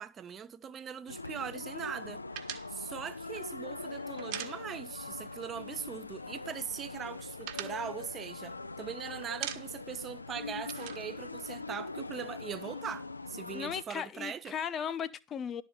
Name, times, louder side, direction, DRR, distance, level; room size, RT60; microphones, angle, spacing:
voice 1, 0.0-2.2 2.7-14.6, right 8 dB, 25° right, 0.7 m, -41 dB
sound 1, 1.1-13.8, left 3 dB, 80° left, 0.4 m, -42 dB
sound 2, 2.3-5.1 5.4-5.6 5.9-6.6 6.9-8.9 9.2-10.0 10.2-12.1, right 11 dB, 45° right, 1.3 m, -43 dB
voice 2, 13.5-15.6, left 8 dB, 25° left, 0.8 m, -36 dB
11.5 x 4.4 x 6.7 m
figure-of-eight pair, 90°, 0 cm